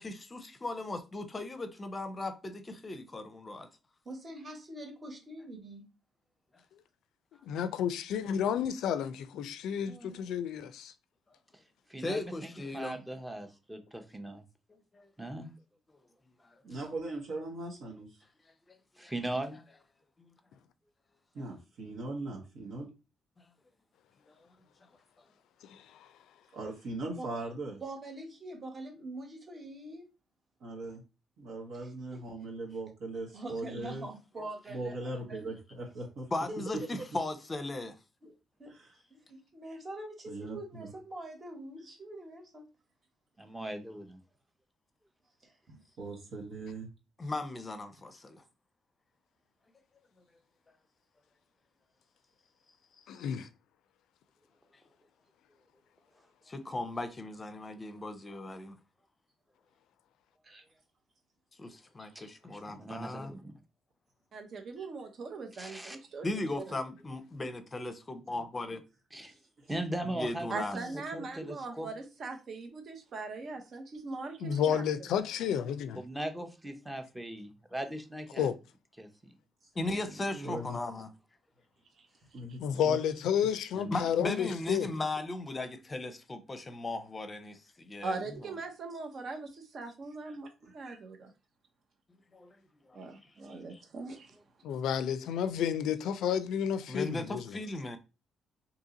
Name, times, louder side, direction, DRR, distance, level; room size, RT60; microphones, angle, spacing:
voice 1, 0.0-3.7 12.0-13.0 14.9-15.1 18.7-18.8 19.0-19.1 20.2-20.3 36.3-38.0 47.2-48.4 53.2-53.3 56.5-58.8 61.6-63.3 66.2-68.8 70.1-70.8 79.8-81.1 83.9-88.4 92.3-92.6 92.9-93.0 93.7-93.8 96.9-98.0, left 2 dB, 25° left, 0.6 m, -37 dB
voice 2, 4.0-5.9 9.8-10.2 27.2-27.3 27.8-30.0 31.8-32.2 33.3-35.5 36.5-36.6 38.2-38.3 38.6-38.7 39.1-42.7 45.4-45.6 60.4-60.6 62.0-62.6 64.8-64.9 90.3-90.4 90.7-90.8, right 1 dB, 35° right, 1.3 m, -44 dB
voice 3, 7.4-10.9 25.6-26.1 53.1-53.5 74.4-76.0 78.4-78.6 82.6-84.9 94.6-97.6, left 8 dB, 85° left, 0.3 m, -31 dB
voice 4, 11.9-14.4 15.2-15.5 19.0-19.6 43.4-44.2 62.5-63.5 65.5-66.0 69.1-69.3 69.7-70.5 70.7-71.9 76.0-78.5 79.0-79.1 79.8-80.2 83.7-84.1, right 1 dB, 10° right, 0.7 m, -39 dB
voice 5, 16.6-18.1 21.3-22.9 26.5-27.8 30.6-31.0 31.4-34.0 34.7-36.3 38.7-38.9 40.3-40.9 46.0-46.9 69.3-69.4 80.3-80.8 82.3-82.6 82.8-83.0 90.6-90.7 93.4-93.6, right 2 dB, 75° right, 1.0 m, -39 dB
voice 6, 64.3-66.3 66.5-66.6 70.5-74.8 88.0-91.3 92.9-94.3, right 3 dB, 55° right, 0.8 m, -40 dB
2.8 x 2.7 x 3.8 m
cardioid pair, 90°, 0 cm